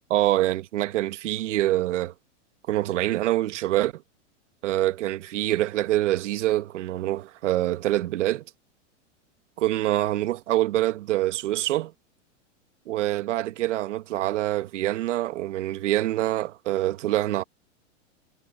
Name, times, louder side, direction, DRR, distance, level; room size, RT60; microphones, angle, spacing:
voice 1, 0.1-2.1 2.7-4.0 4.6-8.4 9.6-11.9 12.9-17.4, right 15 dB, 70° right, 1.4 m, -25 dB
supercardioid pair, 155°, 37 cm